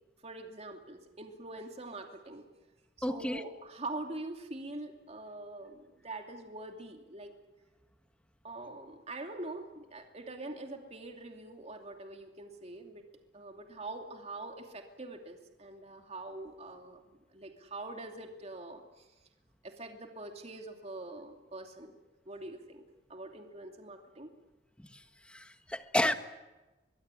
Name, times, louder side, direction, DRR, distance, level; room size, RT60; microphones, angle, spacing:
voice 1, 0.2-2.5 3.0-7.3 8.4-13.1 13.3-19.1 19.6-21.9 22.3-22.8 23.1-24.3, right 2 dB, 40° right, 4 dB, 2.7 m, -44 dB
voice 2, 3.0-3.4 24.8-24.9 25.3-26.1, left 1 dB, 5° left, 8 dB, 1.4 m, -31 dB
24.0 x 22.0 x 9.8 m, 1.1 s
head